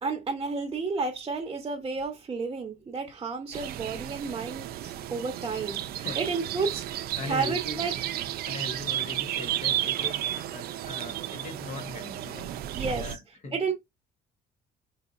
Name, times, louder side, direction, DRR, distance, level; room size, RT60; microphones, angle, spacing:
voice 1, 0.0-6.9 7.3-7.9 12.7-13.1 13.5-13.7, right 4 dB, 25° right, 0.9 m, -31 dB
sound 1, 3.5-13.2, right 12 dB, 65° right, 0.4 m, -33 dB
voice 2, 7.2-7.8 8.4-12.5 12.9-13.6, left 3 dB, 45° left, 1.2 m, -39 dB
4.4 x 2.8 x 2.4 m
cardioid pair, 110°, 17 cm